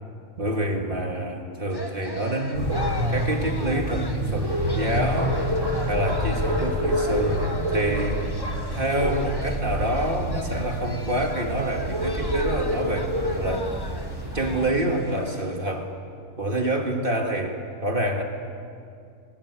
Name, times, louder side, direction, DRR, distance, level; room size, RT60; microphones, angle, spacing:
voice 1, 0.4-5.4 5.9-7.5 7.7-8.3 8.7-13.7 14.3-15.9 16.4-18.2, right 1 dB, 35° right, 3 dB, 2.2 m, -27 dB
sound 1, 1.7-15.6, left 1 dB, 20° left, 1.0 m, -39 dB
sound 2, 2.5-14.7, equal, 55° right, 6.8 m, -27 dB
23.0 x 21.0 x 8.3 m, 2.4 s
omnidirectional pair, 1.6 m